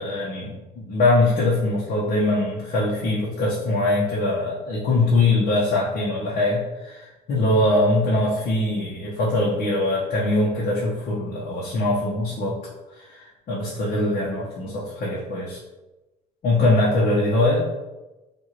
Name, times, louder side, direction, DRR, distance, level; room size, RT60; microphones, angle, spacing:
voice 1, 0.0-12.6 12.9-15.6 16.4-17.7, left 2 dB, 55° left, -6 dB, 1.0 m, -22 dB
4.8 x 2.6 x 2.9 m, 1.1 s
cardioid pair, 110°, 17 cm